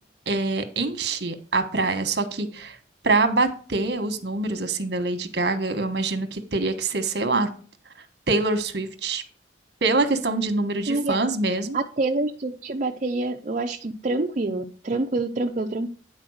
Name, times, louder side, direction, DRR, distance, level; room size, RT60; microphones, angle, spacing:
voice 1, 0.3-2.8 3.0-7.5 8.3-9.2 9.8-11.8, right 3 dB, 65° right, 8 dB, 1.2 m, -25 dB
voice 2, 11.7-15.9, right 2 dB, 45° right, 2 dB, 0.6 m, -26 dB
10.0 x 4.3 x 6.4 m, 0.43 s
head